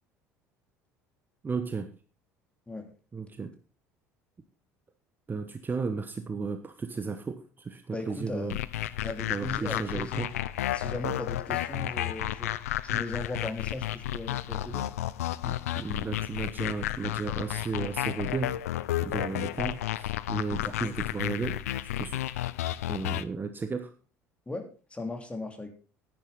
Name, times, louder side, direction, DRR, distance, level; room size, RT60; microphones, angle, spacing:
voice 1, 1.4-1.9 3.1-3.5 5.3-8.6 9.3-10.3 15.4-18.6 19.0-21.6 22.0-22.2 22.9-23.9, right 4 dB, 25° right, 8 dB, 1.1 m, -34 dB
voice 2, 7.9-8.6 9.0-10.3 10.7-12.5 12.8-14.9 20.6-20.9 24.5-25.7, left 2 dB, 15° left, 5 dB, 2.9 m, -37 dB
sound 1, 8.5-23.2, left 13 dB, 75° left, 0.5 m, -32 dB
10.5 x 10.0 x 4.0 m, 0.36 s
figure-of-eight pair, 65°, 8 cm